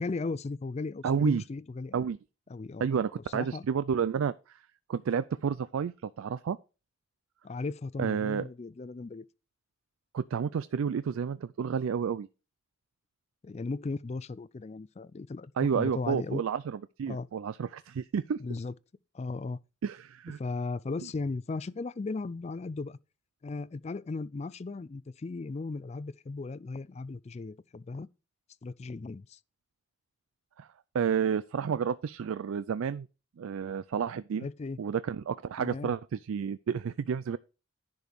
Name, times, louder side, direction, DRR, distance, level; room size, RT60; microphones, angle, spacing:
voice 1, 0.0-2.1 2.5-2.9 3.3-3.6 7.4-9.3 13.4-16.4 17.1-17.3 18.4-18.7 19.1-19.6 20.4-23.0 23.4-28.1 28.6-29.4 34.4-34.8 35.6-35.9, left 3 dB, 30° left, 0.3 m, -36 dB
voice 2, 1.0-1.4 1.9-2.2 2.8-4.6 4.9-6.6 8.0-8.5 10.1-12.3 15.6-18.4 19.8-20.4 30.6-30.7 30.9-33.1 33.4-34.5 34.8-37.4, right 7 dB, 75° right, 0.3 m, -30 dB
10.5 x 5.2 x 4.6 m
head